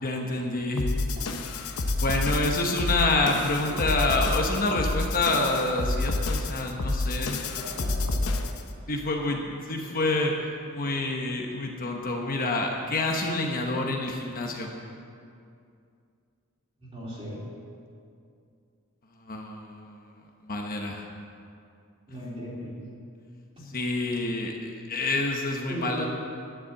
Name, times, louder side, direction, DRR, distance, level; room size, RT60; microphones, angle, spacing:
voice 1, 0.0-0.9 2.0-7.4 8.9-10.3 10.7-14.7 19.3-19.8 20.5-21.0 23.7-24.6 24.9-26.1, left 2 dB, 40° left, 1 dB, 1.0 m, -27 dB
sound 1, 0.8-8.7, left 2 dB, 90° left, 0.9 m, -29 dB
voice 2, 7.6-8.4 9.7-9.9 16.8-17.4 22.1-22.7 25.7-26.1, right 1 dB, 30° right, -6 dB, 3.4 m, -38 dB
10.5 x 7.5 x 8.5 m, 2.4 s
head